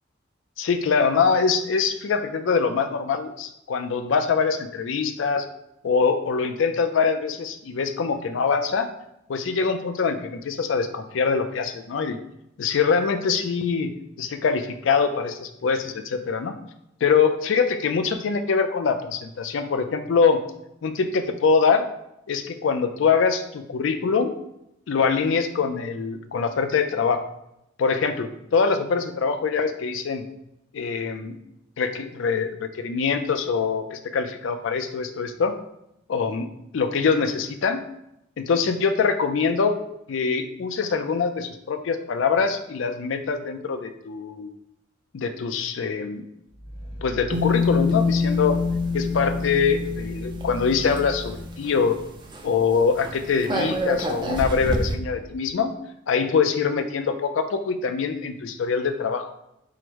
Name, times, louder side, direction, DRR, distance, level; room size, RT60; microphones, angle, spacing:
voice 1, 0.6-5.4 5.8-8.9 9.3-12.2 12.6-16.5 17.0-20.4 20.8-21.9 22.3-24.3 24.9-27.2 27.8-30.2 30.7-31.4 31.8-35.5 36.1-36.5 36.7-37.8 38.4-39.7 40.1-44.5 45.1-46.2 47.0-48.6 48.9-52.0 52.4-55.7 56.1-59.3, left 5 dB, 75° left, 7 dB, 0.4 m, -24 dB
Growling, 46.5-51.4, equal, 30° left, 0.7 m, -38 dB
sound 1, 47.3-52.0 52.3-52.5 52.7-54.9, left 3 dB, 25° right, 0.4 m, -26 dB
4.7 x 2.1 x 4.6 m, 0.81 s
head